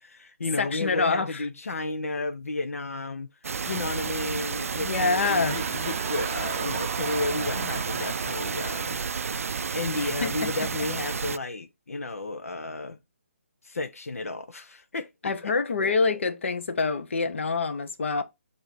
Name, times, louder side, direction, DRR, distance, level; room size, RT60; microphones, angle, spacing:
voice 1, 0.0-3.3 3.6-9.0 9.7-13.0 13.6-15.5 15.8-16.2, left 2 dB, 80° left, 0.8 m, -33 dB
voice 2, 0.6-1.3 4.8-5.6 10.2-10.5 15.2-18.2, left 4 dB, 60° left, 1.0 m, -26 dB
sound 1, 3.4-11.4, right 5 dB, 80° right, 0.4 m, -31 dB
sound 2, 4.7-10.5 11.2-11.3, right 8 dB, 25° right, 0.6 m, -38 dB
7.7 x 2.8 x 4.4 m
hypercardioid pair, 165°, 8 cm